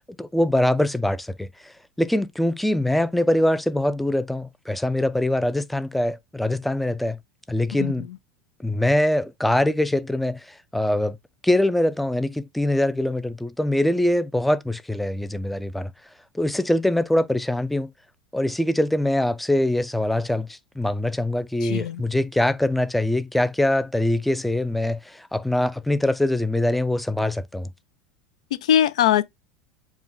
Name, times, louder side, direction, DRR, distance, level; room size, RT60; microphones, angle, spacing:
voice 1, 0.2-7.2 7.5-8.1 8.6-11.2 11.4-15.9 16.3-17.9 18.3-27.7, left 1 dB, 5° left, 0.3 m, -23 dB
voice 2, 21.6-22.0 28.5-29.2, left 10 dB, 80° left, 0.4 m, -21 dB
4.8 x 2.2 x 3.8 m
hypercardioid pair, 95°, 3 cm